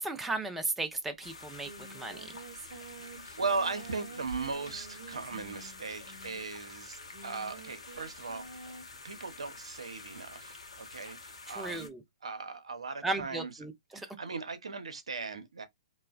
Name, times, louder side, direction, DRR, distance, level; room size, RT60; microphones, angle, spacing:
voice 1, 0.0-2.3 11.6-12.0 13.0-14.1, right 2 dB, 5° right, 0.5 m, -35 dB
Singing, 0.9-1.0 1.2-9.0, right 4 dB, 50° right, 0.9 m, -49 dB
sound 1, 1.2-11.9, left 3 dB, 85° left, 0.8 m, -49 dB
voice 2, 2.7-8.7 9.0-11.9 12.2-13.6 13.9-15.7, right 4 dB, 80° right, 0.7 m, -38 dB
3.1 x 2.0 x 2.3 m
figure-of-eight pair, 125°, 3 cm